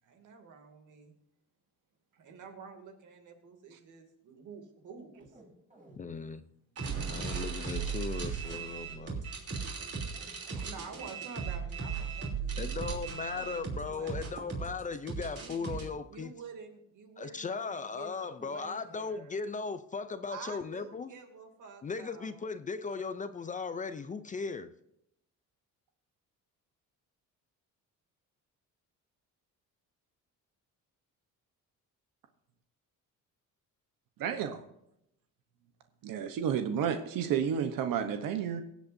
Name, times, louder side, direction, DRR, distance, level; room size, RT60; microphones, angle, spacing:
voice 1, 0.0-1.1 2.1-5.3 10.6-14.5 15.4-15.8 16.1-19.4 20.3-22.5, right 5 dB, 65° right, 2.6 m, -49 dB
sound 1, 5.1-6.0 6.8-7.2 7.6-8.0 8.4-8.6 8.8-9.0 9.6-11.1 13.3-13.6 13.9-14.7, right 1 dB, 25° right, 3.7 m, -54 dB
voice 2, 6.0-6.4 7.1-9.3 12.6-16.3 17.2-21.1 21.8-24.7, left 5 dB, 25° left, 0.5 m, -37 dB
sound 2, 6.8-15.8, right 5 dB, 45° right, 3.2 m, -37 dB
voice 3, 34.2-34.6 36.0-38.6, right 8 dB, 85° right, 1.1 m, -31 dB
23.5 x 8.2 x 2.7 m
cardioid pair, 160°, 33 cm